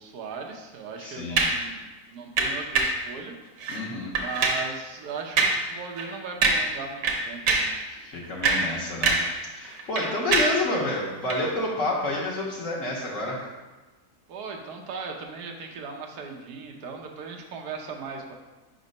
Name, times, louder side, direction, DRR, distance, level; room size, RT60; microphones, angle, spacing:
voice 1, 0.0-3.3 4.2-7.7 14.3-18.3, right 4 dB, 85° right, 2 dB, 1.4 m, -38 dB
voice 2, 1.0-1.5 3.7-4.1 7.9-9.2 9.6-13.5, left 2 dB, 55° left, -4 dB, 1.3 m, -29 dB
sound 1, 1.4-1.7 2.4-3.0 3.6-3.8 4.1-4.7 5.4-5.7 6.0-6.1 6.4-6.8 7.0-7.8 8.2-9.4 9.6-10.7 11.3-11.4, right 3 dB, 65° right, 1.2 m, -24 dB
5.2 x 3.9 x 5.2 m, 1.2 s
omnidirectional pair, 1.6 m